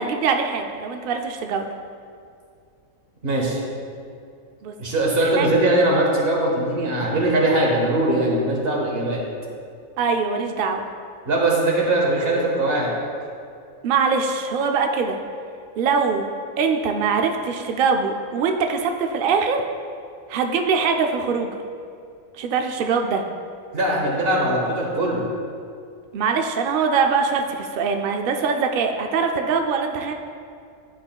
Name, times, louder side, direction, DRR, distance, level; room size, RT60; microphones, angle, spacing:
voice 1, 0.0-1.7 4.6-4.7 5.4-5.5 10.0-10.9 13.8-15.2 15.8-16.3 16.6-19.6 20.3-21.6 22.4-23.2 26.1-30.1, right 5 dB, 85° right, 4 dB, 0.4 m, -22 dB
voice 2, 3.2-3.6 4.8-9.2 11.2-12.9 23.7-25.2, right 1 dB, 45° right, -3 dB, 1.5 m, -21 dB
11.0 x 5.9 x 2.3 m, 2.4 s
omnidirectional pair, 1.5 m